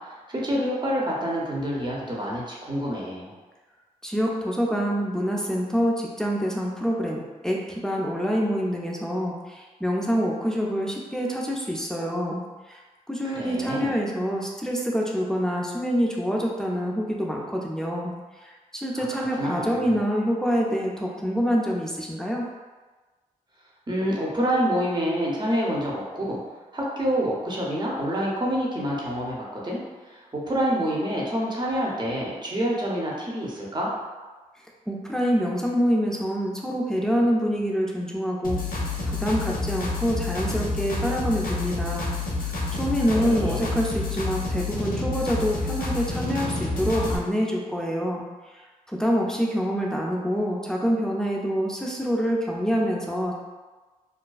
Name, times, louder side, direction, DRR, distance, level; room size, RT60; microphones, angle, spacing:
voice 1, 0.3-3.3 13.2-14.0 18.9-20.0 23.9-26.4 26.7-33.9 43.1-43.7, equal, 30° right, -4 dB, 0.7 m, -27 dB
voice 2, 4.0-12.4 12.7-12.8 13.1-18.1 18.4-22.5 34.9-42.1 42.4-48.2 48.9-53.3, equal, 5° left, -2 dB, 0.4 m, -26 dB
sound 1, 38.4-47.2, left 3 dB, 70° left, 0.5 m, -29 dB
2.4 x 2.2 x 2.3 m, 1.3 s
cardioid pair, 40°, 15 cm